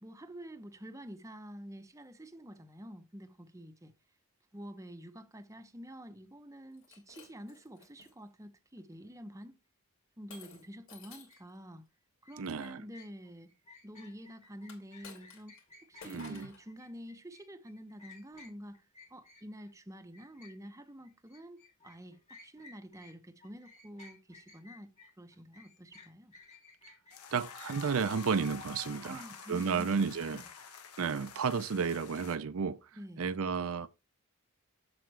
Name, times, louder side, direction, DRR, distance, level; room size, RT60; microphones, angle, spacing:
voice 1, 0.0-3.9 4.5-9.6 10.2-11.8 12.2-13.5 13.8-15.6 15.9-18.8 19.1-26.3 29.0-30.0 30.3-30.4 33.0-33.2, equal, 15° right, 0.7 m, -48 dB
Shatter, 6.7-8.1 8.8-9.1 10.3-11.5 14.6-15.7 16.0-16.6, left 4 dB, 65° left, 2.9 m, -53 dB
sound 1, 11.3-11.4 12.2-19.8 20.1-23.2 23.4-27.3, left 3 dB, 30° left, 2.2 m, -57 dB
voice 2, 12.4-12.8 16.0-16.5 27.3-30.4 31.0-32.9 33.2-33.9, right 5 dB, 65° right, 0.5 m, -32 dB
sound 2, 27.1-32.4, left 6 dB, 90° left, 1.4 m, -48 dB
7.7 x 7.1 x 3.2 m
head